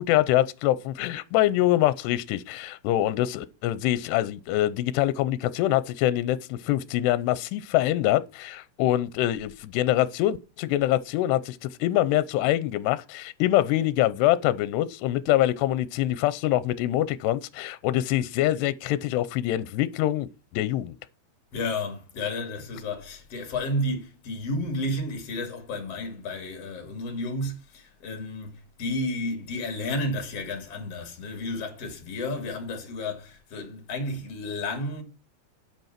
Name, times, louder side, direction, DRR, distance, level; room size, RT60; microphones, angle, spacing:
voice 1, 0.0-20.3 20.5-21.0, left 14 dB, 85° left, 2.8 m, -24 dB
voice 2, 21.5-35.0, left 1 dB, 40° left, 3.1 m, -32 dB
9.3 x 8.2 x 5.9 m
omnidirectional pair, 4.8 m